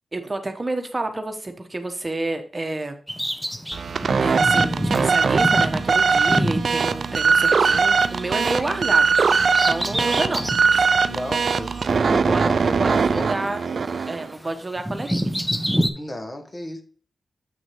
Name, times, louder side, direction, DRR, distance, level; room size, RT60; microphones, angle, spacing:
voice 1, 0.1-3.0 4.2-9.1 9.7-10.4 10.7-10.9 12.0-13.6 14.1-15.3, right 2 dB, 30° right, 6 dB, 1.2 m, -29 dB
Bird vocalization bird call bird song, 3.1-7.7 8.0-10.7 11.2-11.3 12.1-13.6 13.9-15.9, equal, ahead, 0.9 m, -28 dB
sound 1, 3.7-14.3, right 5 dB, 65° right, 0.4 m, -20 dB
voice 2, 10.0-10.5 11.1-13.3 16.0-16.8, left 1 dB, 30° left, 6 dB, 1.4 m, -34 dB
7.9 x 6.0 x 3.1 m, 0.43 s
supercardioid pair, 45°, 0 cm